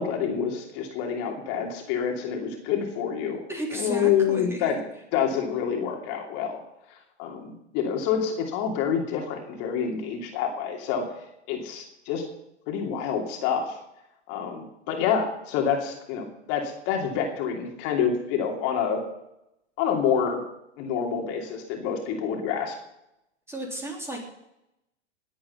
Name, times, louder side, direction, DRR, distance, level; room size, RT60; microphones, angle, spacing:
voice 1, 0.0-3.4 3.7-4.8 5.1-6.6 6.9-11.2 11.5-12.2 12.7-13.8 14.3-19.0 19.8-20.4 20.8-22.8, left 7 dB, 40° left, 1 dB, 2.9 m, -27 dB
voice 2, 3.5-4.7 23.5-24.2, right 1 dB, 5° right, 0 dB, 3.5 m, -33 dB
20.0 x 8.6 x 5.7 m, 0.84 s
hypercardioid pair, 120°, 36 cm